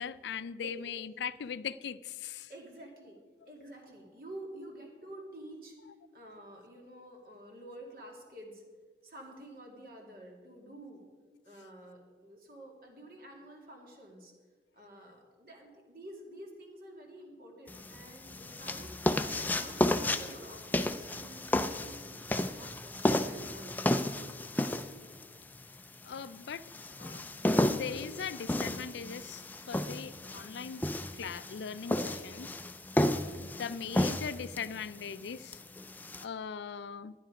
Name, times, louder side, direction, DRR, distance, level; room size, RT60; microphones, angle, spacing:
voice 1, 0.0-2.5 26.0-26.6 26.9-27.3 27.7-30.8 31.1-32.5 33.4-35.6 36.2-37.1, left 6 dB, 80° left, 16 dB, 0.4 m, -40 dB
voice 2, 0.6-0.9 2.5-3.2 3.5-5.8 6.1-8.6 9.0-11.0 11.4-14.3 14.7-18.9 19.4-23.8, right 1 dB, 55° right, 0 dB, 2.4 m, -49 dB
sound 1, 17.7-36.2, left 1 dB, 10° left, 0.4 m, -33 dB
12.0 x 10.5 x 5.0 m, 1.5 s
head